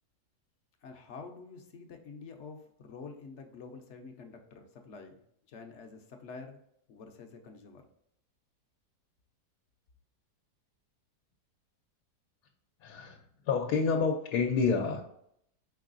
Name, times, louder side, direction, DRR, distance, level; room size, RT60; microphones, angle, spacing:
voice 1, 0.8-5.2 5.5-6.6 6.9-7.9, left 4 dB, 60° left, 4 dB, 0.8 m, -48 dB
voice 2, 12.8-13.2 13.4-15.0, left 5 dB, 80° left, 1 dB, 1.1 m, -28 dB
4.7 x 4.4 x 2.5 m, 0.72 s
omnidirectional pair, 1.7 m